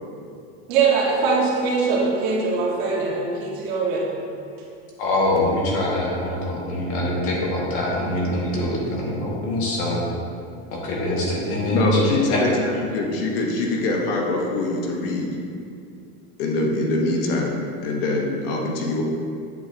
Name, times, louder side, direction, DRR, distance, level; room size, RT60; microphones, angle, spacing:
voice 1, 0.7-4.1, right 4 dB, 55° right, -4 dB, 2.1 m, -22 dB
voice 2, 5.0-10.0 10.7-12.0 12.3-12.4, left 1 dB, 45° left, -4 dB, 2.1 m, -24 dB
voice 3, 11.7-15.3 16.4-19.0, left 2 dB, 65° left, 0 dB, 1.4 m, -23 dB
8.7 x 8.2 x 2.9 m, 2.4 s
supercardioid pair, 160°, 30 cm